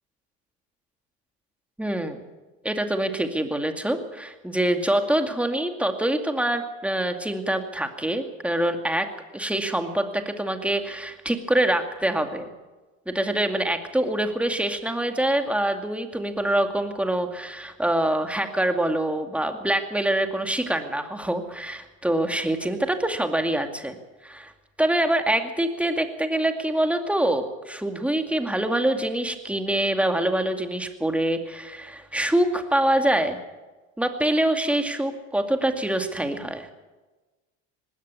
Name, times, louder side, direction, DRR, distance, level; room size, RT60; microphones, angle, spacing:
voice 1, 1.8-2.2 2.6-9.1 9.3-12.5 13.1-24.0 24.2-24.5 24.8-33.4 34.0-36.7, right 1 dB, 5° right, 5 dB, 2.3 m, -25 dB
19.5 x 17.0 x 8.4 m, 1.2 s
supercardioid pair, 110°, 38 cm